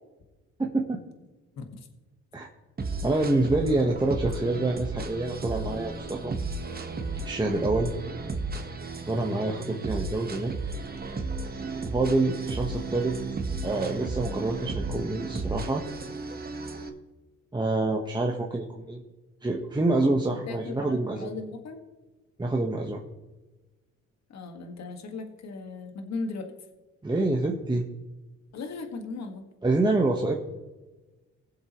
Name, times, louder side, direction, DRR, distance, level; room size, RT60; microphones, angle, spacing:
voice 1, 0.6-1.0 2.3-2.5 3.0-6.3 7.2-7.9 9.0-10.5 11.8-13.2 13.6-15.8 17.5-19.0 19.4-21.3 22.4-23.0 27.0-27.9 29.6-30.4, right 2 dB, 15° right, 0 dB, 1.2 m, -27 dB
sound 1, 2.8-16.9, right 3 dB, 30° right, 1.4 m, -34 dB
voice 2, 20.2-21.8 24.3-26.5 28.5-29.5, left 3 dB, 60° left, 5 dB, 1.8 m, -37 dB
21.0 x 7.4 x 3.1 m, 1.2 s
cardioid pair, 90°, 30 cm